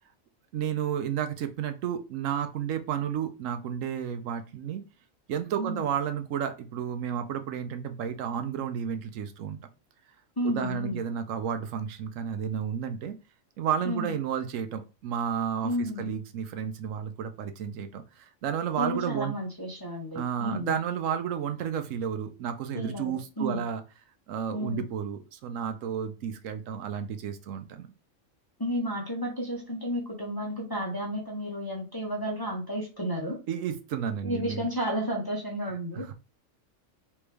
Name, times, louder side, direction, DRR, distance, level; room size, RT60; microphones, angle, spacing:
voice 1, 0.5-4.8 5.3-9.6 10.4-13.2 13.6-19.3 20.1-23.8 24.3-27.9 33.5-34.7 35.9-36.1, right 8 dB, 80° right, 9 dB, 1.0 m, -32 dB
voice 2, 10.4-11.0 13.8-14.2 15.6-16.1 18.8-20.7 22.7-23.7 24.5-24.9 28.6-33.4 34.2-36.1, equal, 20° left, -2 dB, 0.6 m, -32 dB
3.4 x 3.0 x 3.3 m, 0.31 s
omnidirectional pair, 1.3 m